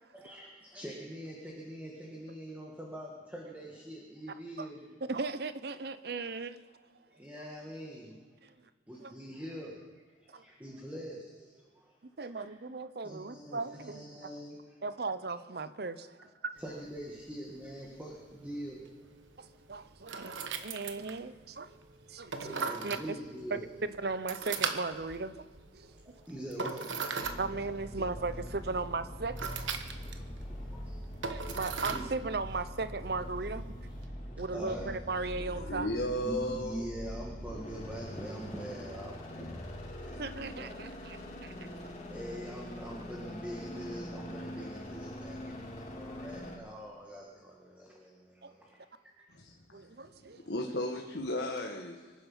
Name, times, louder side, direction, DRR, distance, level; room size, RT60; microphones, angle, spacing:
voice 1, 0.1-4.9 7.1-8.5 8.9-9.8 10.1-12.0 12.2-12.5 13.0-14.8 16.2-16.3 16.6-19.1 19.4-19.5 21.1-21.2 22.1-23.7 25.8-27.3 29.6-32.0 34.1-34.9 36.2-40.8 42.1-48.8 49.2-49.3, equal, 10° right, -2 dB, 1.7 m, -44 dB
voice 2, 5.1-6.6 8.4-8.5 9.0-9.1 10.3-10.4 12.2-14.3 14.8-16.1 19.4-21.7 22.1-22.3 22.8-23.2 23.5-25.4 25.7-25.9 27.4-29.4 29.7-29.8 31.3-33.7 34.4-35.9 40.2-41.5 48.4-48.5 49.7-50.4, right 3 dB, 55° right, 12 dB, 0.7 m, -37 dB
sound 1, 16.6-34.1, right 5 dB, 85° right, 1.1 m, -41 dB
sound 2, 27.2-46.6, equal, 35° left, 2.8 m, -43 dB
voice 3, 35.3-36.9 49.3-49.8 50.2-52.1, left 1 dB, 65° left, 1 dB, 1.4 m, -35 dB
25.0 x 10.0 x 5.7 m, 1.5 s
head